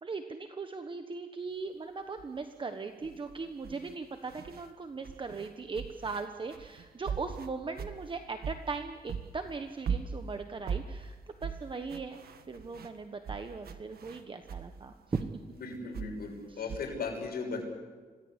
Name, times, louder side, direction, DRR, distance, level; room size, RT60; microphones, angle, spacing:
voice 1, 0.0-15.3 16.5-16.7, right 4 dB, 35° right, 6 dB, 1.3 m, -39 dB
sound 1, 2.2-2.4 3.0-4.7 5.0-8.8 9.1-14.7 15.1-16.8, right 6 dB, 80° right, 1.6 m, -40 dB
voice 2, 15.5-17.6, left 4 dB, 85° left, 1 dB, 6.3 m, -37 dB
26.5 x 18.5 x 8.2 m, 1.4 s
wide cardioid pair, 125°, 16 cm